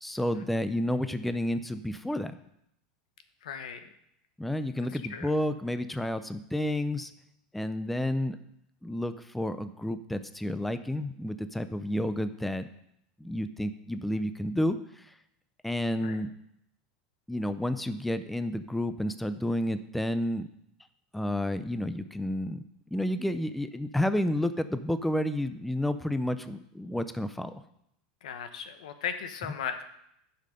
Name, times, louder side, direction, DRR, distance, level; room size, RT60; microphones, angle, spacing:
voice 1, 0.0-2.4 4.4-7.1 7.5-8.4 8.8-12.7 13.2-15.1 15.6-16.3 17.3-20.5 21.1-22.6 22.9-27.6, left 1 dB, 5° left, 11 dB, 0.5 m, -30 dB
voice 2, 3.4-3.8 5.1-5.3 16.0-16.2 28.2-29.8, left 7 dB, 85° left, 9 dB, 0.9 m, -37 dB
10.5 x 5.7 x 5.0 m, 0.75 s
supercardioid pair, 120°, 4 cm